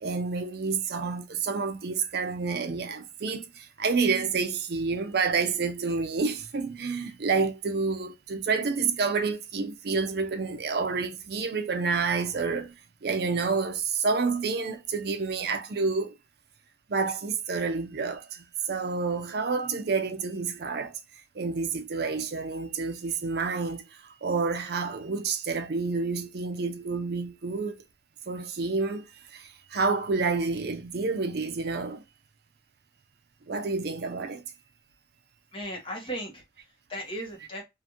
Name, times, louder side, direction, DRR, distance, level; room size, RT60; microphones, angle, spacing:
voice 1, 0.0-3.4 3.8-12.7 13.0-16.1 16.9-18.2 18.7-20.9 21.4-23.8 24.2-27.8 28.3-29.1 29.7-32.0 33.5-34.4, right 4 dB, 60° right, 0.5 m, -29 dB
voice 2, 35.5-37.6, equal, 30° left, 1.1 m, -37 dB
2.9 x 2.5 x 2.4 m
head